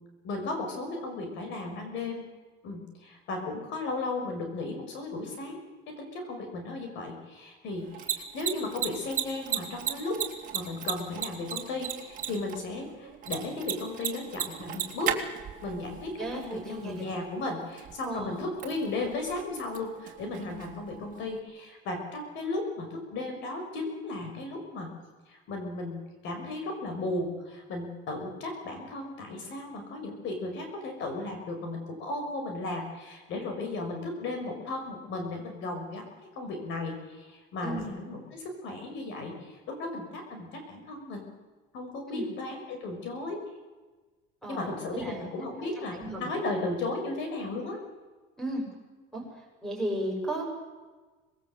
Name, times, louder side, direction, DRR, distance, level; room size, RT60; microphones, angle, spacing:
voice 1, 0.2-2.3 2.6-5.6 5.9-10.2 10.5-15.1 15.6-24.9 25.3-41.3 41.7-43.4 44.5-47.8, left 2 dB, 65° left, 4 dB, 6.1 m, -35 dB
Mechanisms, 7.8-21.4, right 9 dB, 40° right, 3.0 m, -37 dB
voice 2, 16.2-17.1 18.0-18.4 37.6-37.9 42.1-42.3 44.4-45.3 45.6-46.3 48.4-48.7 49.1-49.2 49.6-50.4, right 1 dB, ahead, 0 dB, 7.9 m, -35 dB
25.5 x 20.5 x 8.3 m, 1.3 s
cardioid pair, 150°, 21 cm